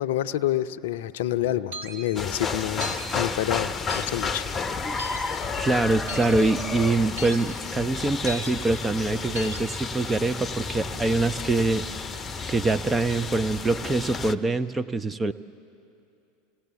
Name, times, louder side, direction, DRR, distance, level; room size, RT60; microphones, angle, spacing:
voice 1, 0.0-4.4, left 13 dB, 65° left, 12 dB, 0.6 m, -28 dB
sound 1, 1.7-1.9 2.8-3.1 3.9-4.1 5.0-5.2 6.1-6.3 7.2-7.4 8.3-8.5 9.3-9.6, left 1 dB, 70° right, 2.2 m, -35 dB
sound 2, 2.2-14.3, left 4 dB, 25° left, 0.8 m, -32 dB
voice 2, 5.6-11.8 12.5-15.3, right 3 dB, 15° right, 12 dB, 0.6 m, -24 dB
28.0 x 18.0 x 7.0 m, 2.6 s
figure-of-eight pair, 80°, 0 cm